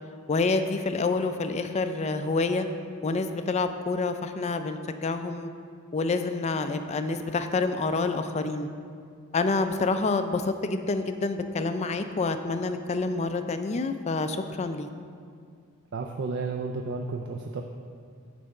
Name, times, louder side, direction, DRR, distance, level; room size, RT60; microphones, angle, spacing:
voice 1, 0.3-2.7 3.0-5.5 5.9-8.7 9.3-14.9, left 3 dB, 30° left, 8 dB, 0.3 m, -27 dB
voice 2, 15.9-17.6, right 4 dB, 55° right, 3 dB, 0.4 m, -32 dB
9.1 x 3.4 x 6.4 m, 2.2 s
head